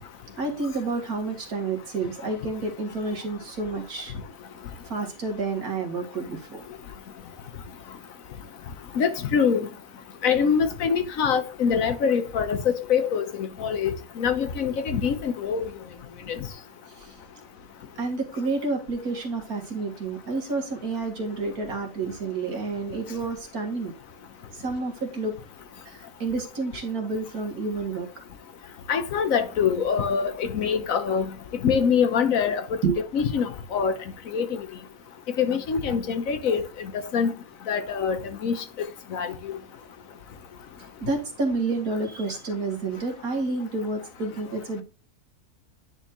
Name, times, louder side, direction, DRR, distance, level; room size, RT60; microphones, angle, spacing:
voice 1, 0.4-4.1 4.9-6.6 16.9-17.1 18.0-23.9 24.5-25.3 25.9-28.1 32.8-33.0 41.0-44.8, right 3 dB, 70° right, 2.3 m, -29 dB
voice 2, 9.0-9.7 10.2-15.6 28.9-31.3 31.6-32.6 33.1-33.9 34.3-34.6 35.4-36.6 37.1-37.3 37.7-38.6 39.1-39.6, left 6 dB, 65° left, 1.2 m, -24 dB
10.0 x 4.3 x 3.0 m
omnidirectional pair, 1.6 m